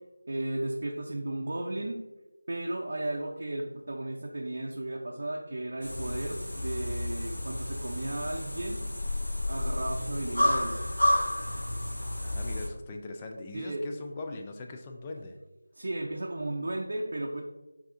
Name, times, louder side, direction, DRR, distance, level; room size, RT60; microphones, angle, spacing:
voice 1, 0.3-2.0 2.5-8.8 9.5-10.9 13.5-13.9 15.7-17.4, right 1 dB, 45° right, -1 dB, 0.5 m, -34 dB
sound 1, 5.8-12.7, left 1 dB, 50° left, 1.1 m, -31 dB
voice 2, 12.2-15.4, left 2 dB, 15° left, 3 dB, 0.3 m, -40 dB
7.6 x 2.6 x 2.6 m, 1.1 s
figure-of-eight pair, 165°, 0 cm